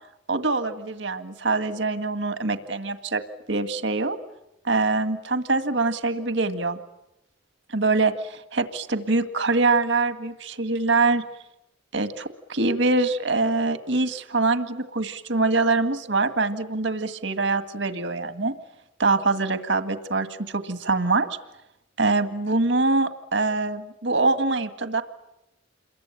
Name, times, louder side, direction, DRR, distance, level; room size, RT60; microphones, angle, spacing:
voice 1, 0.3-3.2 3.5-4.2 4.6-6.8 7.7-11.2 11.9-18.5 19.0-21.3 22.0-25.0, right 3 dB, 65° right, 9 dB, 1.9 m, -24 dB
29.0 x 22.5 x 9.1 m, 0.88 s
head